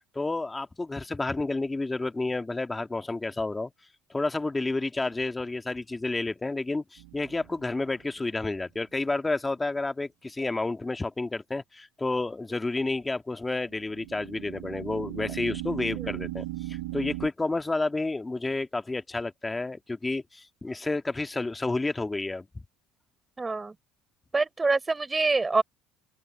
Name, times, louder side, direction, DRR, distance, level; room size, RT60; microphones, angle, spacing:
voice 1, 0.1-3.7 4.1-22.5, left 2 dB, 15° left, 1.7 m, -30 dB
sound 1, 7.0-7.7 13.7-17.3, right 18 dB, 80° right, 2.8 m, -37 dB
voice 2, 23.4-23.7 24.3-25.6, right 3 dB, 20° right, 5.8 m, -26 dB
open air
supercardioid pair, 95°, 0 cm